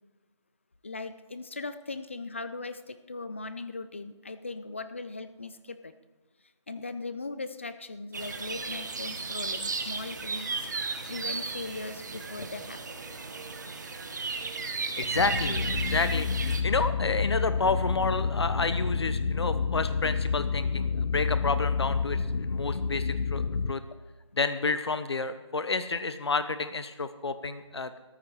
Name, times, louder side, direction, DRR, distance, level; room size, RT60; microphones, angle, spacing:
voice 1, 0.8-5.9 6.7-13.0, left 3 dB, 25° left, 12 dB, 0.5 m, -39 dB
sound 1, 8.1-16.6, right 4 dB, 35° right, 1.1 m, -35 dB
voice 2, 15.0-23.4 23.7-23.8 24.3-28.0, left 4 dB, 60° left, 11 dB, 0.9 m, -30 dB
sound 2, 15.1-23.7, left 5 dB, 80° left, 0.6 m, -29 dB
14.0 x 12.5 x 4.8 m, 1.2 s
figure-of-eight pair, 165°, 16 cm